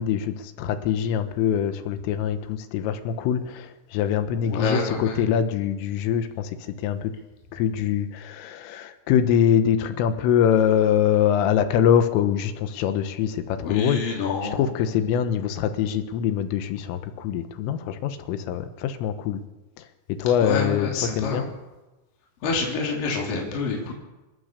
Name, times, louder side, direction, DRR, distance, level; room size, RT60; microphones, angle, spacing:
voice 1, 0.0-7.2 7.5-14.0 14.5-19.4 19.8-19.9 20.1-21.5, left 9 dB, 80° left, 9 dB, 3.8 m, -24 dB
voice 2, 4.4-5.2 13.6-14.7 20.4-21.5 22.4-23.9, left 4 dB, 45° left, -1 dB, 4.7 m, -27 dB
29.5 x 13.5 x 6.9 m, 1.1 s
omnidirectional pair, 5.8 m